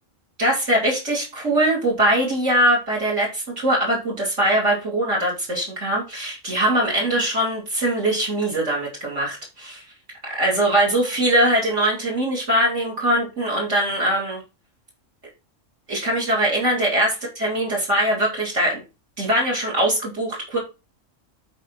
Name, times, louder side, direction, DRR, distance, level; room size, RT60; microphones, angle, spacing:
voice 1, 0.4-9.8 10.4-14.4 15.9-18.8 19.2-20.6, right 1 dB, 65° right, -2 dB, 3.5 m, -22 dB
8.8 x 4.4 x 5.6 m, 0.28 s
omnidirectional pair, 1.3 m